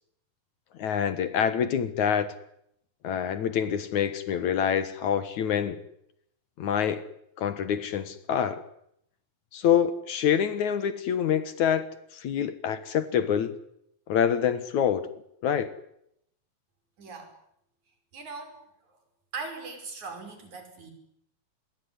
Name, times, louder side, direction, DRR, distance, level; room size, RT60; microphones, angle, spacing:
voice 1, 0.8-2.3 3.0-5.8 6.6-7.0 7.4-8.6 9.5-11.9 12.1-13.6 14.1-15.1 15.4-15.7, left 8 dB, 60° left, 2.5 m, -26 dB
voice 2, 17.0-17.3 18.1-18.6 18.9-19.0 19.3-20.9, right 4 dB, 55° right, 6.8 m, -39 dB
26.5 x 21.5 x 9.7 m
omnidirectional pair, 4.1 m